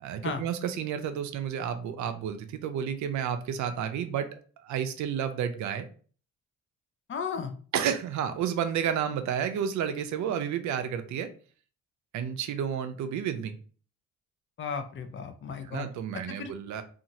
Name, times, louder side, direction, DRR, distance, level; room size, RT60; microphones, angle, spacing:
voice 1, 0.0-4.3 4.6-5.9 7.7-11.3 12.1-13.5 15.7-16.8, right 8 dB, 70° right, 8 dB, 0.5 m, -31 dB
voice 2, 7.1-7.6 14.6-15.9 16.1-16.5, left 6 dB, 40° left, 7 dB, 0.5 m, -35 dB
2.8 x 2.4 x 2.7 m, 0.42 s
cardioid pair, 90°, 30 cm